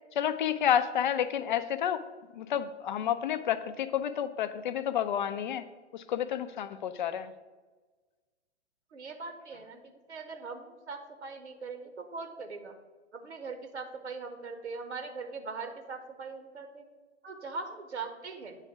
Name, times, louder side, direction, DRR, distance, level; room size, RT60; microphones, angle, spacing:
voice 1, 0.2-2.0 2.3-5.7 5.9-7.3, left 9 dB, 45° left, 13 dB, 0.5 m, -30 dB
voice 2, 8.9-12.7 13.1-16.8 17.2-18.6, right 4 dB, 70° right, 6 dB, 1.0 m, -41 dB
8.9 x 3.4 x 5.8 m, 1.3 s
figure-of-eight pair, 110°, 35 cm